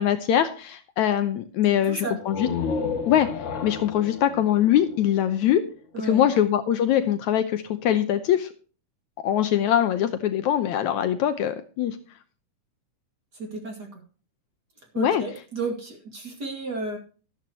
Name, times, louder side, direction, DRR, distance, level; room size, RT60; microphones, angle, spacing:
voice 1, 0.0-2.5 3.1-3.3 3.6-5.6 6.0-8.5 9.2-12.0 15.0-15.2, left 10 dB, 70° left, 10 dB, 2.0 m, -22 dB
voice 2, 1.7-2.2 5.9-6.3 13.3-14.0 14.9-17.0, right 3 dB, 35° right, 3 dB, 2.5 m, -33 dB
sound 1, 2.2-5.8, left 5 dB, 55° left, 1.3 m, -32 dB
13.0 x 12.5 x 2.9 m, 0.37 s
omnidirectional pair, 3.8 m